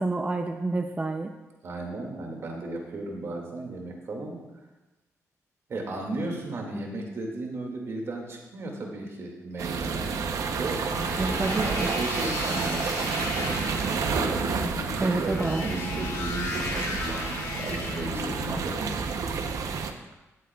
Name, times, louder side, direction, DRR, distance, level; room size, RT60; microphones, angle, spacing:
voice 1, 0.0-1.3 11.2-11.9 15.0-15.7, right 2 dB, 20° right, 4 dB, 0.5 m, -28 dB
voice 2, 1.6-4.4 5.7-10.2 10.5-13.5 14.8-18.9, right 2 dB, 55° right, 0 dB, 2.1 m, -35 dB
sound 1, 9.6-19.9, right 5 dB, 75° right, 0.7 m, -30 dB
sound 2, 10.9-18.6, left 3 dB, 85° left, 1.4 m, -35 dB
17.0 x 7.5 x 2.3 m, 1.1 s
cardioid pair, 120°, 6 cm